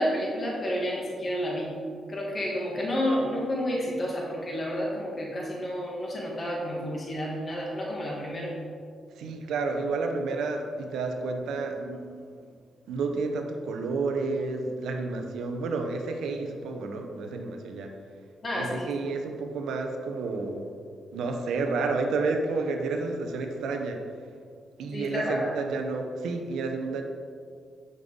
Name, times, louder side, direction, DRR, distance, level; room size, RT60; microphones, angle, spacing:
voice 1, 0.0-1.7 2.1-8.5 18.4-18.9 24.9-25.5, equal, 45° left, -3 dB, 1.7 m, -30 dB
voice 2, 9.2-12.5 12.9-17.9 18.5-20.7 21.1-24.0 24.8-27.0, right 3 dB, 80° right, 4 dB, 0.8 m, -30 dB
7.6 x 5.4 x 3.8 m, 2.1 s
supercardioid pair, 65°, 0 cm